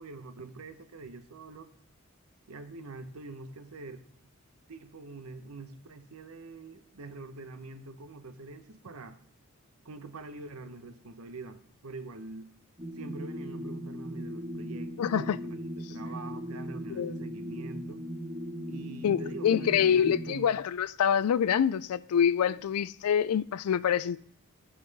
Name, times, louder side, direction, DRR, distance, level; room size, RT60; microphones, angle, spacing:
voice 1, 0.0-1.7 2.5-4.0 4.7-9.2 9.8-12.5 12.9-18.0 18.7-20.5 22.5-22.6, right 3 dB, 85° right, 0.9 m, -45 dB
sound 1, 12.8-20.3, equal, 25° right, 1.2 m, -38 dB
voice 2, 15.0-15.4 16.9-17.1 19.0-24.2, left 8 dB, 90° left, 0.4 m, -26 dB
14.5 x 5.5 x 4.0 m
head